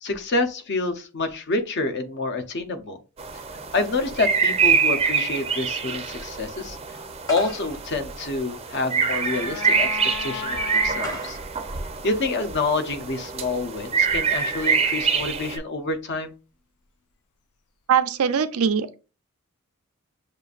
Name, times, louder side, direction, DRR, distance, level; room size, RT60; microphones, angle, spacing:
voice 1, 0.0-3.0 3.7-7.0 7.3-11.4 12.0-16.3, left 3 dB, 55° left, 0.7 m, -27 dB
sound 1, 3.2-15.6, right 6 dB, 30° right, 0.5 m, -25 dB
sound 2, 7.2-12.9, left 1 dB, 15° left, 0.8 m, -42 dB
sound 3, 8.6-11.2 11.5-11.6, left 8 dB, 90° left, 0.4 m, -36 dB
voice 2, 17.9-19.0, right 7 dB, 80° right, 0.5 m, -22 dB
6.8 x 2.5 x 2.4 m
head